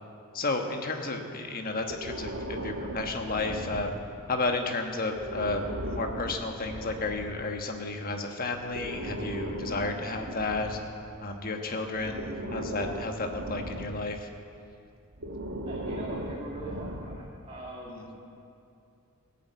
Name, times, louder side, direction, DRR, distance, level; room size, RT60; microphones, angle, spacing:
voice 1, 0.3-3.9 4.3-10.8 11.2-14.3 17.9-18.0, left 3 dB, 40° left, 4 dB, 1.3 m, -32 dB
Breathing, 1.9-4.3 5.1-7.4 8.5-11.4 12.0-14.2 15.1-17.4, right 1 dB, 65° right, 1.5 m, -37 dB
voice 2, 15.7-18.2, right 1 dB, 25° right, -5 dB, 1.8 m, -41 dB
16.5 x 8.6 x 8.1 m, 2.5 s
head